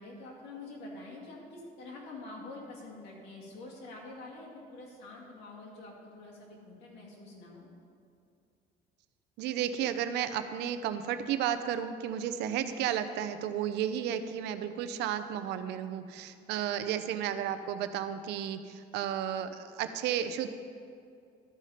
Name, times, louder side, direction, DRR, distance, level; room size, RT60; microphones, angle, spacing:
voice 1, 0.0-7.7 16.4-16.9, left 2 dB, 90° left, -3 dB, 2.4 m, -47 dB
voice 2, 9.4-20.5, right 9 dB, 85° right, 10 dB, 0.6 m, -33 dB
13.0 x 5.0 x 5.6 m, 2.4 s
cardioid pair, 110°, 17 cm